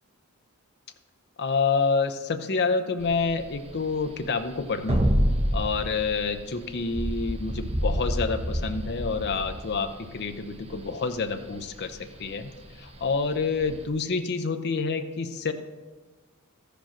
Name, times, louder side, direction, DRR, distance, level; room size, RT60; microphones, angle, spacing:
voice 1, 1.4-5.0 5.5-12.5 12.8-15.5, left 4 dB, 50° left, 7 dB, 0.7 m, -28 dB
sound 1, 3.0-13.8, equal, 25° right, 0.9 m, -29 dB
13.5 x 5.1 x 5.8 m, 1.3 s
head